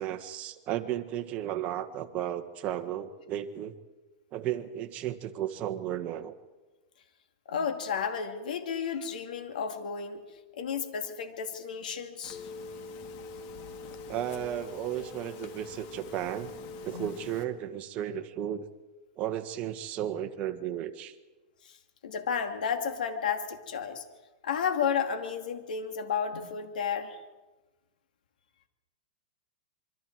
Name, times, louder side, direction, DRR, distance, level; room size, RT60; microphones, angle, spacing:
voice 1, 0.0-3.7 4.3-6.3 14.1-16.5 16.8-18.6 19.2-21.1, right 11 dB, 35° right, 6 dB, 1.7 m, -34 dB
voice 2, 7.5-10.2 10.6-12.4 16.9-17.1 22.0-24.0 24.4-27.2, left 7 dB, 85° left, 6 dB, 2.5 m, -32 dB
Telephone, 12.2-17.4, left 3 dB, 45° left, 1.8 m, -43 dB
26.5 x 23.5 x 4.7 m, 1.1 s
hypercardioid pair, 140°, 4 cm